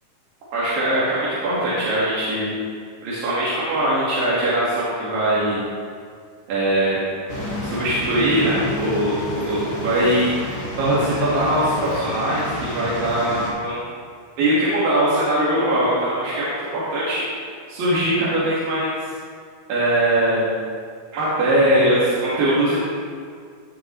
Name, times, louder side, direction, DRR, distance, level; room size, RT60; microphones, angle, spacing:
voice 1, 0.5-2.5 3.0-5.6 6.5-7.1 7.6-13.8 14.4-17.2 17.7-19.0 19.7-20.5 21.1-22.8, right 1 dB, 85° right, -9 dB, 3.4 m, -21 dB
sound 1, 7.3-13.5, equal, 35° left, 2.1 m, -31 dB
16.5 x 6.7 x 3.0 m, 2.1 s
omnidirectional pair, 3.9 m